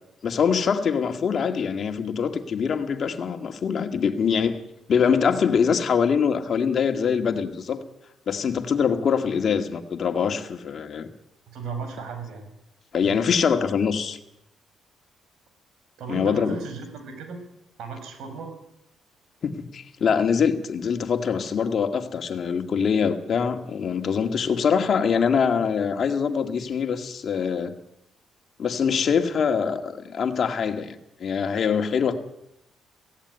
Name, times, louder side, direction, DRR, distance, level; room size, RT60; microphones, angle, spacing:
voice 1, 0.2-4.6 4.9-7.8 8.3-11.1 12.9-14.2 16.1-16.6 19.4-27.7 28.6-32.2, left 6 dB, 55° left, 7 dB, 2.0 m, -24 dB
voice 2, 11.5-12.5 13.0-13.2 16.0-17.4 17.8-18.5, right 4 dB, 80° right, 6 dB, 5.9 m, -35 dB
16.5 x 16.0 x 9.8 m, 0.86 s
cardioid pair, 90°, 0 cm